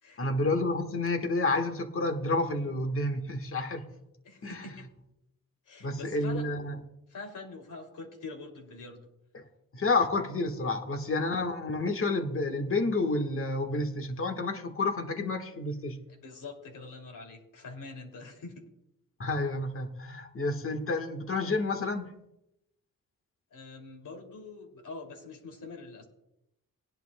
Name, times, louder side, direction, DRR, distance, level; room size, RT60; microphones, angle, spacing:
voice 1, 0.2-3.9 4.4-4.6 5.8-6.8 9.3-9.4 9.7-16.0 19.2-22.1, left 2 dB, 40° left, 1.5 m, -30 dB
voice 2, 4.2-4.8 5.7-6.5 7.1-9.1 16.1-18.7 23.5-26.0, left 3 dB, 65° left, 2.8 m, -45 dB
19.0 x 10.5 x 2.3 m
cardioid pair, 105°, 33 cm